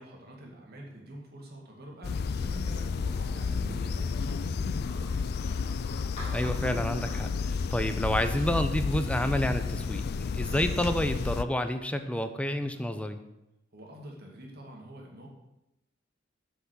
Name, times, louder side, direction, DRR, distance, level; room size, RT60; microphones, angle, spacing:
voice 1, 0.0-5.3 13.7-15.3, right 1 dB, 55° right, 0 dB, 2.1 m, -45 dB
sound 1, 2.0-11.4, left 5 dB, 55° left, 0.4 m, -31 dB
sound 2, 4.8-12.7, left 1 dB, 30° left, 3.2 m, -51 dB
voice 2, 6.3-10.0 10.3-13.2, left 1 dB, 5° left, 8 dB, 0.6 m, -29 dB
8.1 x 5.7 x 6.3 m, 0.91 s
head